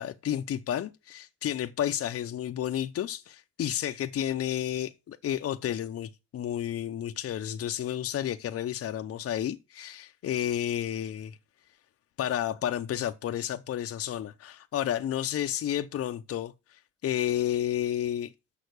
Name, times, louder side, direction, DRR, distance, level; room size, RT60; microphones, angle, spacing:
voice 1, 0.0-11.4 12.2-18.3, left 11 dB, 50° left, 0.6 m, -31 dB
6.6 x 5.7 x 6.5 m
cardioid pair, 90°, 30 cm